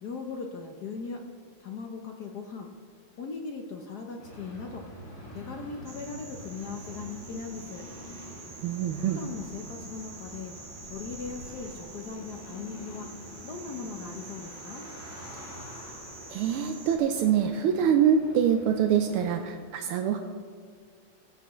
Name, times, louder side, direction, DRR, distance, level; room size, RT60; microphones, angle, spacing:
voice 1, 0.0-1.2 1.6-2.7 3.2-4.9 5.3-7.9 9.1-10.5 10.9-13.1 13.4-14.9, left 5 dB, 60° left, 3 dB, 1.1 m, -39 dB
sound 1, 4.2-19.5, equal, 80° left, 4.3 m, -46 dB
sound 2, 5.8-17.0, right 3 dB, 35° right, 0.7 m, -47 dB
voice 2, 8.6-9.2 16.3-20.2, right 8 dB, 80° right, 6 dB, 1.5 m, -25 dB
17.0 x 8.4 x 3.1 m, 2.1 s
omnidirectional pair, 2.4 m